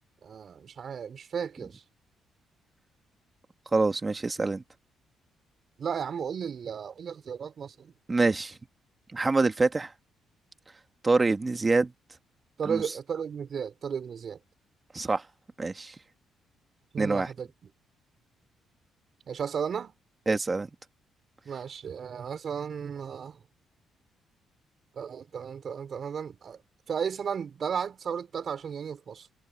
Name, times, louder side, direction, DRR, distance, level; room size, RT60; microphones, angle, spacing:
voice 1, 0.2-1.8 5.8-7.9 12.6-14.4 16.9-17.5 19.3-20.0 21.4-23.4 25.0-26.6 26.9-29.3, right 7 dB, 50° right, 4.6 m, -34 dB
voice 2, 3.7-4.6 8.1-8.6 9.1-9.9 11.0-11.9 12.7-12.8 14.9-15.2 15.6-15.9 17.0-17.3 20.3-20.7, right 3 dB, 25° right, 1.8 m, -25 dB
cardioid pair, 90°, 0 cm